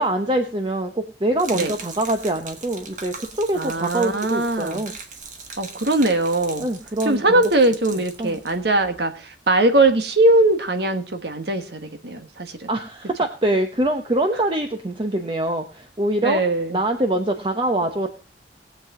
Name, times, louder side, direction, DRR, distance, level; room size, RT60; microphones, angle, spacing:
voice 1, 0.0-4.9 6.6-7.4 8.2-8.4 12.7-16.4 16.7-18.1, right 1 dB, 30° right, 5 dB, 0.8 m, -24 dB
Gurgling / Liquid, 1.4-9.0, right 5 dB, 45° right, 1.5 m, -39 dB
voice 2, 3.5-4.8 5.6-6.7 7.0-12.7 16.2-16.8, right 2 dB, 65° right, 7 dB, 1.4 m, -20 dB
19.5 x 7.6 x 3.7 m, 0.33 s
head